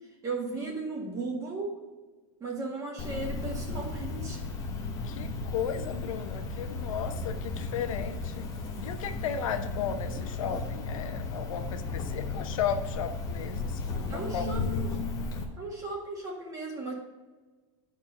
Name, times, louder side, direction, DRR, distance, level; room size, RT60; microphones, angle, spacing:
voice 1, 0.2-1.7 2.4-4.4 14.1-14.9 15.6-16.9, right 3 dB, 20° right, -1 dB, 1.9 m, -36 dB
Cricket, 3.0-15.4, left 3 dB, 20° left, 1.1 m, -34 dB
voice 2, 5.0-8.5 8.8-14.5, left 8 dB, 75° left, 8 dB, 0.8 m, -35 dB
9.6 x 4.6 x 5.4 m, 1.3 s
supercardioid pair, 160°, 17 cm